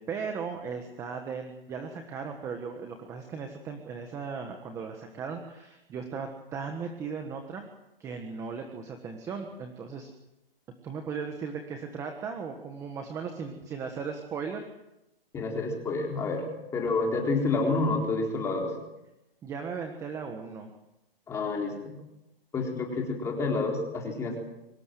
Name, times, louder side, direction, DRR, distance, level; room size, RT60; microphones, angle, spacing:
voice 1, 0.0-7.7 8.0-10.1 10.8-14.6 19.4-20.7, right 5 dB, 10° right, 5 dB, 1.5 m, -37 dB
voice 2, 15.3-16.5 16.7-18.7 21.3-21.9 22.5-24.4, left 3 dB, 10° left, 0 dB, 3.9 m, -29 dB
24.5 x 20.0 x 7.7 m, 0.92 s
hypercardioid pair, 165°, 30 cm